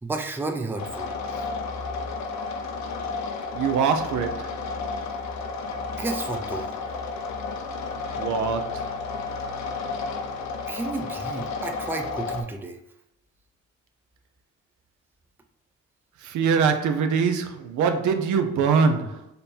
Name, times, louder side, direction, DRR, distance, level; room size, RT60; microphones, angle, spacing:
voice 1, 0.0-1.1 5.9-6.7 10.7-12.8, right 3 dB, 5° right, 0.5 m, -32 dB
sound 1, 0.8-12.4, left 4 dB, 65° left, 0.7 m, -32 dB
voice 2, 3.5-4.6 8.2-8.9 16.2-19.3, right 5 dB, 75° right, 0.6 m, -23 dB
5.3 x 2.2 x 4.2 m
cardioid pair, 90°, 30 cm